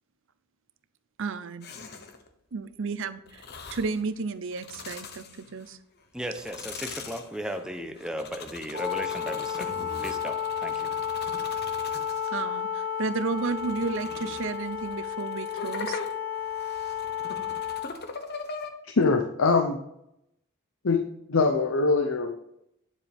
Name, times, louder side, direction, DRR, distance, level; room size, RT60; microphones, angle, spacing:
voice 1, 1.2-1.7 2.5-3.5 3.7-5.8 12.3-16.0, right 4 dB, 65° right, 13 dB, 0.6 m, -32 dB
sound 1, 1.6-2.3 3.3-4.0 4.5-5.7 6.2-12.5 13.0-18.7, left 4 dB, 55° left, 1.0 m, -41 dB
voice 2, 6.1-10.9, equal, 5° right, 5 dB, 0.8 m, -36 dB
Wind instrument woodwind instrument, 8.7-17.9, left 8 dB, 45° right, 2.1 m, -32 dB
voice 3, 18.8-19.8 20.8-21.0 21.3-22.4, left 4 dB, 75° left, 5 dB, 0.7 m, -23 dB
9.8 x 7.4 x 3.5 m, 0.78 s
head